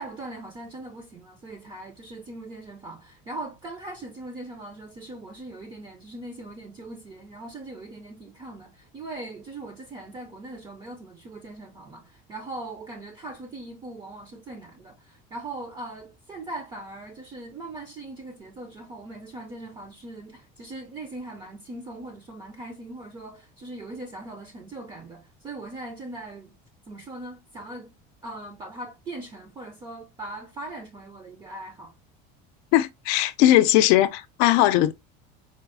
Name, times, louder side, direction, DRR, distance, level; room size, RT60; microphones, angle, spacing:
voice 1, 0.0-26.6 26.9-27.9 28.2-31.9, right 2 dB, 20° right, 0.4 m, -40 dB
voice 2, 32.7-34.9, left 14 dB, 70° left, 0.5 m, -19 dB
4.2 x 2.0 x 2.5 m
cardioid pair, 145°, 21 cm